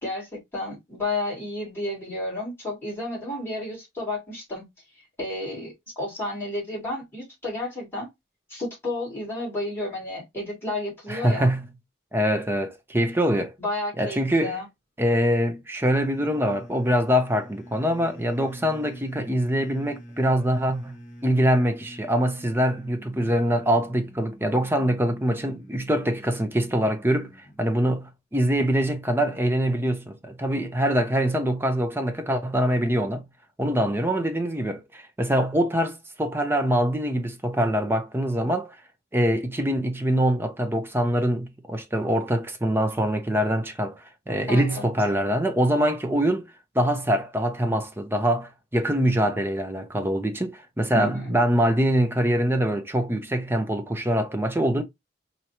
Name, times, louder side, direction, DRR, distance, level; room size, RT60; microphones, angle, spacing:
voice 1, 0.0-4.6 5.2-8.1 8.5-11.6 13.6-14.6 44.5-44.8 50.9-51.4, left 2 dB, 10° left, 2.8 m, -31 dB
voice 2, 11.1-11.7 12.1-13.5 14.0-14.6 15.0-20.9 21.2-33.3 33.6-38.8 39.1-46.5 46.7-54.8, equal, 10° right, 0.6 m, -24 dB
sound 1, 15.8-27.7, equal, 40° left, 1.3 m, -46 dB
4.5 x 2.7 x 2.9 m
head